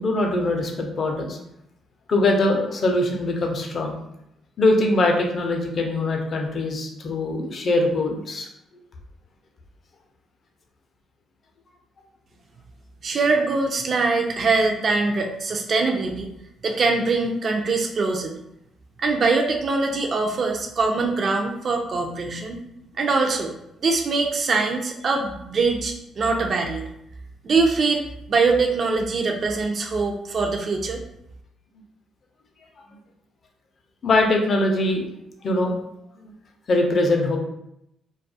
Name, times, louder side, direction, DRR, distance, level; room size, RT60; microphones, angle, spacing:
voice 1, 0.0-1.4 2.1-4.0 4.6-8.5 34.0-35.1 35.4-35.8 36.2-36.3 36.7-37.4, left 2 dB, 45° left, 2 dB, 0.4 m, -22 dB
voice 2, 13.0-16.3 16.6-18.3 19.0-22.6 23.0-23.5 23.8-26.8 27.4-31.0, right 3 dB, 45° right, 2 dB, 0.3 m, -23 dB
2.3 x 2.2 x 2.6 m, 0.79 s
cardioid pair, 120°, 0 cm